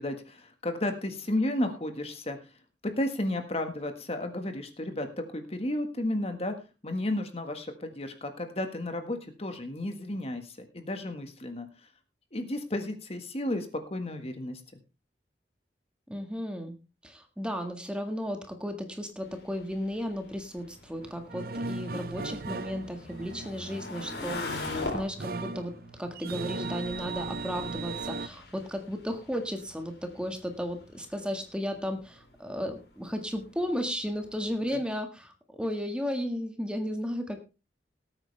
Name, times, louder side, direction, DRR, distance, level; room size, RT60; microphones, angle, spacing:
voice 1, 0.0-2.4 2.8-6.5 6.8-11.9 12.3-14.6 34.7-34.8, left 1 dB, 35° left, 7 dB, 1.6 m, -33 dB
voice 2, 16.1-16.7 17.0-37.4, equal, 5° right, 5 dB, 1.7 m, -34 dB
sound 1, 19.2-34.8, left 2 dB, 65° left, 3.8 m, -43 dB
sound 2, 21.0-28.3, right 3 dB, 55° right, 0.7 m, -38 dB
18.5 x 8.9 x 3.3 m, 0.29 s
head